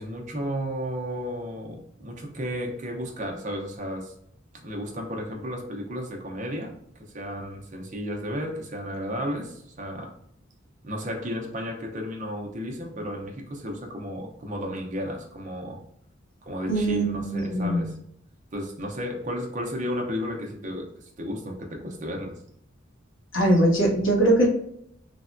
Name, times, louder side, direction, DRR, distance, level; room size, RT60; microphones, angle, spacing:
voice 1, 0.0-4.1 4.6-6.7 7.0-10.1 10.8-15.8 16.4-17.9 18.5-22.4, equal, 35° right, 1 dB, 0.5 m, -33 dB
voice 2, 16.7-17.9 23.3-24.5, right 1 dB, 70° left, -1 dB, 1.0 m, -21 dB
3.3 x 2.1 x 2.5 m, 0.71 s
head